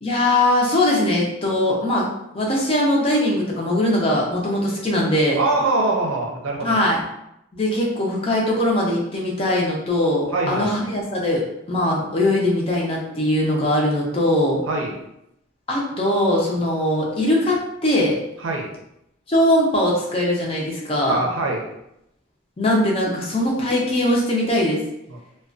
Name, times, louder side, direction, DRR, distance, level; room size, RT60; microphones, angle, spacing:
voice 1, 0.0-2.1 2.3-5.4 6.6-7.0 7.5-11.4 11.7-14.6 15.7-18.2 19.3-21.2 22.6-24.8, left 1 dB, 30° left, -3 dB, 0.5 m, -21 dB
voice 2, 5.4-6.8 10.3-10.7 14.7-15.0 18.4-18.7 21.0-21.6 25.1-25.2, right 2 dB, 80° right, 0 dB, 0.5 m, -23 dB
2.3 x 2.2 x 2.4 m, 0.81 s
head